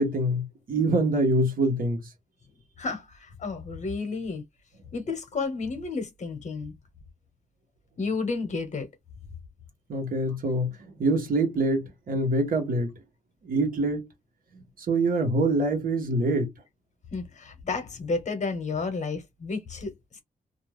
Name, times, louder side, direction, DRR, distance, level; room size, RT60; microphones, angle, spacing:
voice 1, 0.0-2.0 9.9-10.7 11.0-12.9 13.4-14.1 14.8-16.5, right 2 dB, 75° right, 1.0 m, -25 dB
voice 2, 2.8-4.4 4.9-6.7 8.0-8.9 17.1-20.2, left 4 dB, 50° left, 0.9 m, -31 dB
2.4 x 2.2 x 3.2 m
wide cardioid pair, 160°, 15 cm